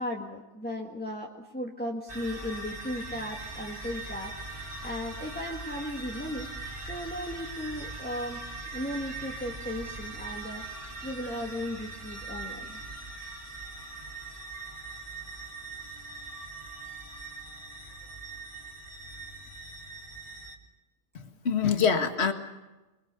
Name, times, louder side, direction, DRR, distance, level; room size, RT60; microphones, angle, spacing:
voice 1, 0.0-6.5 6.8-8.4 8.7-12.8, left 1 dB, 10° left, -2 dB, 2.0 m, -36 dB
sound 1, 2.1-20.6, right 3 dB, 25° right, 3.0 m, -41 dB
voice 2, 21.2-22.3, left 6 dB, 60° left, 6 dB, 2.0 m, -25 dB
27.5 x 23.0 x 6.9 m, 1.1 s
omnidirectional pair, 1.2 m